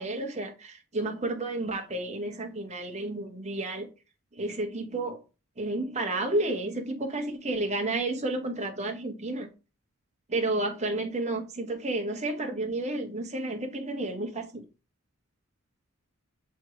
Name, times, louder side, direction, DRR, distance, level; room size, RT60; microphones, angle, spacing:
voice 1, 0.0-3.9 4.3-5.2 5.6-9.5 10.3-14.6, right 2 dB, 30° right, 1.3 m, -31 dB
8.4 x 3.2 x 4.0 m
head